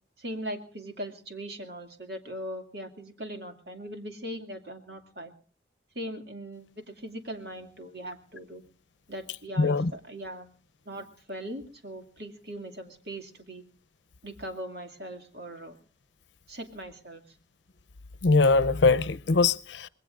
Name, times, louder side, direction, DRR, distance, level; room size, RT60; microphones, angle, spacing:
voice 1, 0.2-5.3 5.9-8.6 9.1-10.5 10.9-13.6 14.2-15.8 16.5-17.2, equal, 60° right, 2.4 m, -40 dB
voice 2, 9.6-9.9 18.2-19.9, left 3 dB, 85° left, 0.7 m, -22 dB
26.0 x 21.0 x 2.5 m
head